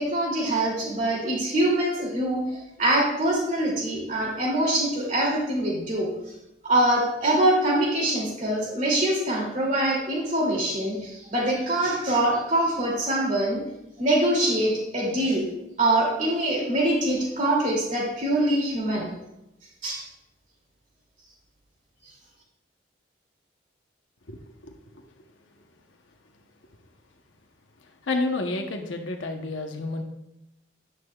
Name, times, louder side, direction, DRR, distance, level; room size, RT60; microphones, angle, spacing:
voice 1, 0.0-6.1 6.6-13.6 14.0-15.5 15.8-19.1 19.8-20.0, right 1 dB, 40° right, -3 dB, 2.6 m, -24 dB
voice 2, 24.3-25.0 28.0-30.0, left 2 dB, 85° left, 3 dB, 0.9 m, -30 dB
10.5 x 9.6 x 2.3 m, 0.89 s
head